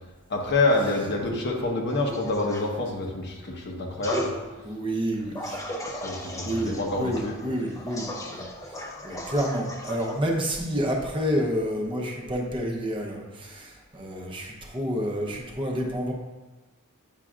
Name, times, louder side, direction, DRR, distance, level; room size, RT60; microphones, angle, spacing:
voice 1, 0.3-4.3 5.9-7.4, left 2 dB, 50° left, 0 dB, 1.1 m, -27 dB
sound 1, 1.9-2.7 4.0-4.3 5.3-10.2, left 1 dB, 15° left, 0.8 m, -37 dB
voice 2, 4.6-5.6 6.4-16.1, equal, 20° right, -1 dB, 0.9 m, -29 dB
8.9 x 5.7 x 2.5 m, 1.2 s
head